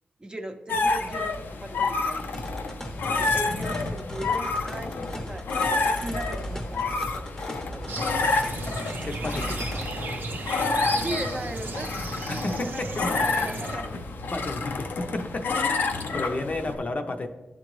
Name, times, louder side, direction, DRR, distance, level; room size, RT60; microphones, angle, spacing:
voice 1, 0.2-2.5 3.1-8.1 10.9-14.0, right 1 dB, 25° right, 5 dB, 0.6 m, -38 dB
sound 1, 0.7-16.8, left 3 dB, 85° left, 0.6 m, -29 dB
sound 2, 2.3-9.8, equal, 15° left, 0.7 m, -37 dB
sound 3, 7.9-13.8, right 2 dB, 75° right, 0.6 m, -35 dB
voice 2, 9.0-9.6 12.3-13.1 13.4-13.6 14.3-17.3, left 2 dB, 45° left, 5 dB, 0.6 m, -32 dB
11.0 x 3.8 x 3.1 m, 1.1 s
wide cardioid pair, 85°, 3 cm